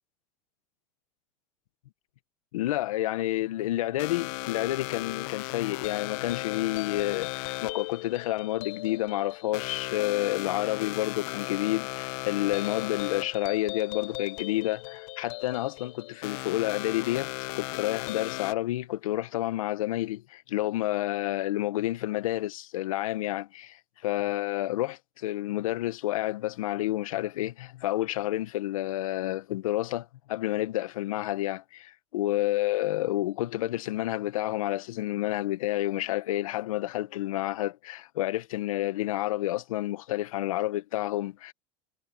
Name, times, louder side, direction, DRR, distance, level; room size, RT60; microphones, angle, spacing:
voice 1, 2.5-23.8 24.0-41.5, left 15 dB, 85° left, 1.3 m, -30 dB
sound 1, 4.0-18.5, left 25 dB, 65° left, 1.0 m, -36 dB
hypercardioid pair, 100°, 17 cm